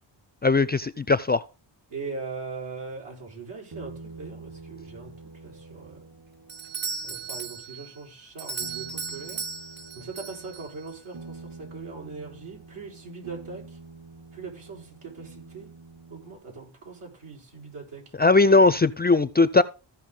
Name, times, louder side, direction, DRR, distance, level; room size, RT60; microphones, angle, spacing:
voice 1, 0.4-1.4 18.2-19.6, left 3 dB, 20° left, 0.4 m, -19 dB
voice 2, 1.9-5.1 5.4-6.1 7.0-9.4 10.0-13.6 14.3-15.7 16.1-18.0, right 4 dB, 80° right, 4.6 m, -40 dB
sound 1, 3.7-7.6 8.6-16.3, right 3 dB, 50° right, 4.2 m, -46 dB
Doorbell, 6.5-11.0, right 5 dB, 20° right, 0.6 m, -36 dB
15.5 x 5.6 x 3.8 m
cardioid pair, 65°, 49 cm